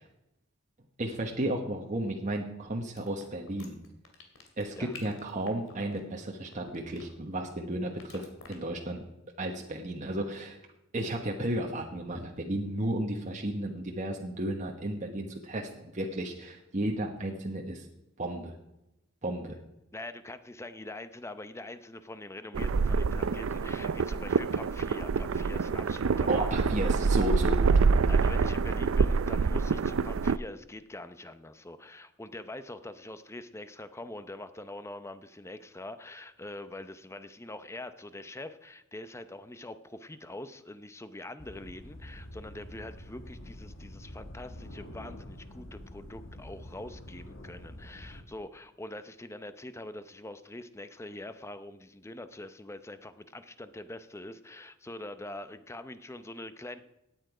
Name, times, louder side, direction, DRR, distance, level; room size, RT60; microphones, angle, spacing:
voice 1, 1.0-3.8 4.6-9.0 9.4-10.6 10.9-17.8 18.2-18.5 19.2-19.5 26.3-27.7, right 1 dB, 40° right, 1 dB, 1.2 m, -33 dB
sound 1, 3.0-7.4 8.0-8.6, left 4 dB, 85° left, 2.6 m, -48 dB
voice 2, 19.9-27.1 28.1-56.8, left 1 dB, 15° left, 11 dB, 0.7 m, -44 dB
sound 2, 22.5-30.4, right 5 dB, 85° right, 0.5 m, -26 dB
sound 3, 41.4-48.2, left 1 dB, 70° left, 1.6 m, -46 dB
17.0 x 9.1 x 4.9 m, 0.88 s
head